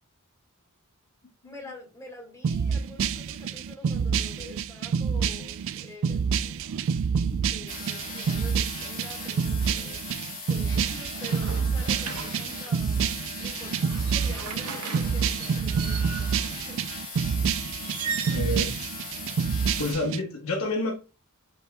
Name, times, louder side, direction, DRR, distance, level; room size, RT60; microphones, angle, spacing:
voice 1, 1.4-6.6 7.5-16.9, left 1 dB, 15° left, 1.8 m, -46 dB
sound 1, 2.4-20.2, right 6 dB, 60° right, 0.4 m, -28 dB
sound 2, 7.7-19.9, left 3 dB, 40° left, 2.0 m, -39 dB
sound 3, 11.1-12.8 13.7-16.5 17.8-18.4, right 6 dB, 90° right, 0.7 m, -37 dB
voice 2, 18.2-18.7 19.8-20.9, left 2 dB, 75° left, 1.2 m, -29 dB
5.4 x 4.1 x 2.3 m
head